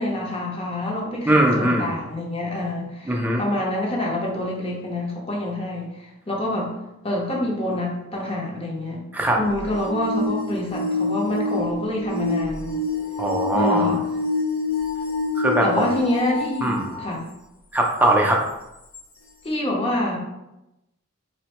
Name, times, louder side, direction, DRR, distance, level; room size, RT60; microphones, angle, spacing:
voice 1, 0.0-6.7 7.0-9.0 9.4-12.8 13.5-14.0 15.6-17.3 19.4-20.2, left 1 dB, 30° left, -2 dB, 0.7 m, -26 dB
voice 2, 1.3-1.9 3.1-3.4 9.1-9.4 13.2-14.0 15.4-15.9 16.6-17.0 17.7-18.4, right 1 dB, 10° right, 0 dB, 0.4 m, -20 dB
sound 1, 9.5-17.1 17.8-17.9 18.9-19.0, left 3 dB, 85° left, 0.8 m, -27 dB
3.9 x 2.1 x 2.9 m, 0.92 s
head